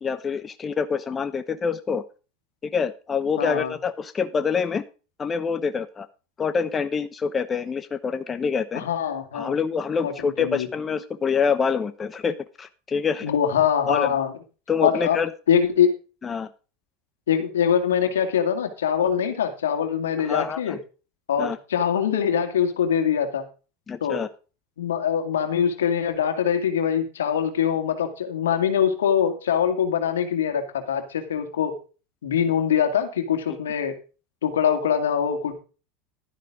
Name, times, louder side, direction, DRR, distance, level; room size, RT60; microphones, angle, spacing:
voice 1, 0.0-2.0 2.7-4.8 5.2-6.1 6.4-8.8 9.3-13.3 13.9-14.1 14.7-15.3 16.2-16.5 20.3-20.8 21.4-21.6 23.9-24.3, left 6 dB, 25° left, 11 dB, 1.0 m, -26 dB
voice 2, 3.4-3.7 8.7-9.5 10.0-10.7 13.2-14.3 14.8-15.2 15.5-15.9 17.3-20.8 21.3-23.5 24.0-24.2 24.8-31.8 32.2-33.9 34.4-35.6, left 8 dB, 90° left, 5 dB, 2.2 m, -23 dB
12.0 x 10.5 x 3.7 m, 0.34 s
hypercardioid pair, 100°, 0 cm